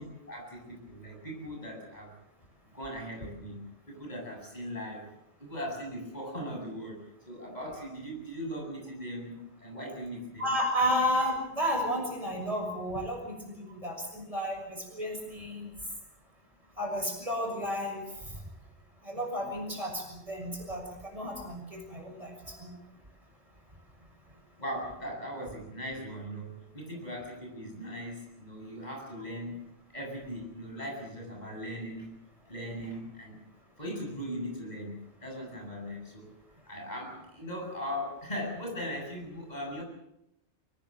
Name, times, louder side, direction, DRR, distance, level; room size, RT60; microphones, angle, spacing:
voice 1, 0.0-2.1 2.7-3.6 3.9-5.1 5.4-10.5 24.6-29.7 29.9-32.2 32.5-33.4 33.8-36.3 36.7-39.8, equal, 40° left, 0 dB, 8.2 m, -39 dB
voice 2, 10.4-15.7 16.8-18.1 19.0-22.7, equal, 30° right, 1 dB, 6.8 m, -32 dB
24.5 x 19.5 x 7.7 m, 0.84 s
omnidirectional pair, 1.2 m